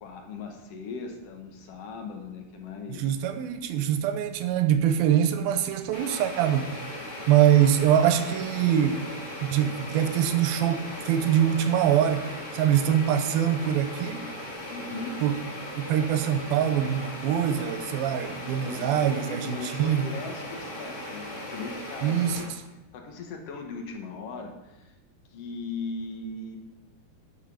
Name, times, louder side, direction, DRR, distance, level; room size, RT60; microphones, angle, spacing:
voice 1, 0.0-3.2 14.7-15.2 18.6-22.5 22.9-24.9 25.3-26.6, left 4 dB, 75° left, 1.4 m, -38 dB
voice 2, 2.9-6.9 7.3-9.1 9.4-14.4 15.2-15.4 15.8-20.1 22.0-22.4, right 10 dB, 85° right, 2.5 m, -24 dB
sound 1, 5.9-22.4, left 1 dB, 30° left, 3.4 m, -38 dB
12.0 x 5.7 x 5.7 m
omnidirectional pair, 4.3 m